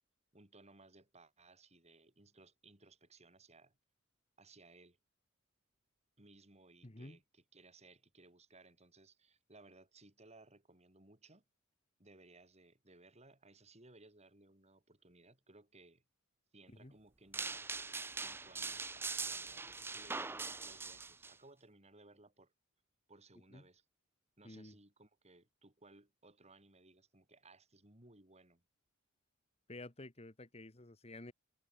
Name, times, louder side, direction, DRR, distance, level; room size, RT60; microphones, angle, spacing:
voice 1, 0.3-3.8 4.4-5.0 6.2-11.4 12.0-16.0 16.5-17.8 18.2-22.5 23.1-23.9 24.4-28.6, right 2 dB, 30° right, 5.3 m, -62 dB
voice 2, 6.8-7.2 16.8-16.9 23.5-23.6 24.4-24.7 29.7-31.3, left 2 dB, 30° left, 1.6 m, -51 dB
sound 1, 17.3-21.3, right 4 dB, 10° right, 0.4 m, -42 dB
head